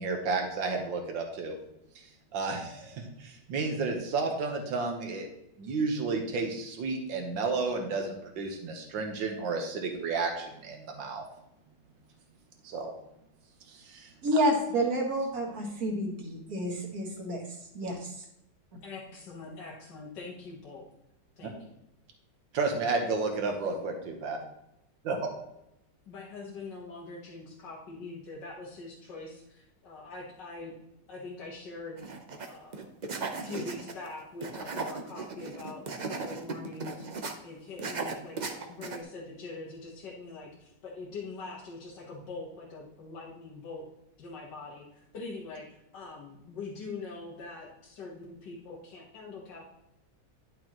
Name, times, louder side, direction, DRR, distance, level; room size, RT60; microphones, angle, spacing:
voice 1, 0.0-1.6 1.9-2.0 2.3-5.3 5.6-11.2 12.6-12.9 13.7-14.1 22.5-24.4 25.0-25.3, right 4 dB, 90° right, 3 dB, 1.8 m, -32 dB
voice 2, 14.2-17.4 17.7-18.1, right 1 dB, 55° right, 0 dB, 2.0 m, -29 dB
voice 3, 18.8-20.9 21.4-21.6 26.1-30.7 31.1-32.0 32.5-32.9 33.4-37.1 37.4-43.9 44.2-49.7, left 3 dB, 70° left, -4 dB, 2.0 m, -43 dB
sound 1, 32.0-32.5 32.7-34.1 34.4-37.3 37.8-39.0, right 4 dB, 70° right, 0.4 m, -37 dB
11.0 x 6.1 x 3.0 m, 0.83 s
omnidirectional pair, 2.0 m